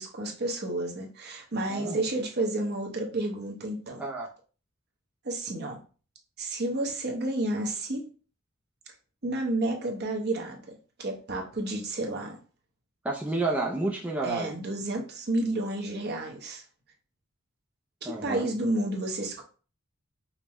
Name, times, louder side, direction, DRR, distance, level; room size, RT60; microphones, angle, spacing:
voice 1, 0.0-4.0 5.2-5.8 6.4-8.0 9.2-12.4 14.2-16.6 18.0-19.4, right 2 dB, 50° right, 0 dB, 0.9 m, -31 dB
voice 2, 1.7-2.0 4.0-4.3 13.0-14.5 18.1-18.5, right 2 dB, 5° right, -2 dB, 0.4 m, -30 dB
5.2 x 2.1 x 3.0 m, 0.37 s
head